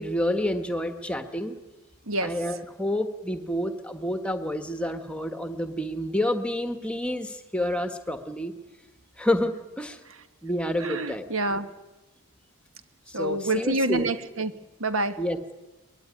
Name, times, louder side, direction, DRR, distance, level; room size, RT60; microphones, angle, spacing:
voice 1, 0.0-1.6 2.2-8.5 9.2-10.0 10.4-11.4 13.1-14.1 15.2-15.5, left 1 dB, 5° left, 7 dB, 1.4 m, -29 dB
voice 2, 10.8-11.7 13.1-14.5 14.8-15.2, right 2 dB, 60° right, 9 dB, 1.4 m, -27 dB
23.0 x 20.5 x 9.9 m, 1.1 s
head